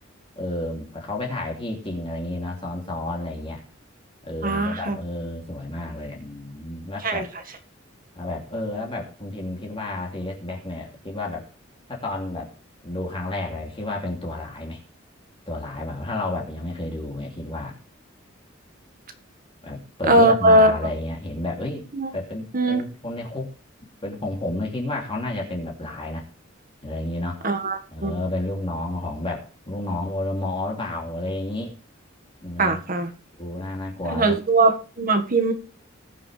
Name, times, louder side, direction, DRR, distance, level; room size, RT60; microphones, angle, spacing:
voice 1, 0.3-3.6 4.2-7.2 8.1-11.5 11.9-12.5 12.8-14.8 15.5-17.7 19.6-21.8 22.1-23.5 24.0-26.2 26.8-27.4 27.9-31.7 32.4-32.8 33.4-34.4, left 1 dB, 30° left, -1 dB, 2.9 m, -31 dB
voice 2, 4.4-5.0 7.0-7.2 20.1-20.7 21.9-22.1 22.5-22.8 27.4-28.1 32.6-33.1 34.0-35.5, right 2 dB, 45° right, 7 dB, 1.7 m, -20 dB
20.0 x 6.7 x 3.4 m, 0.37 s
head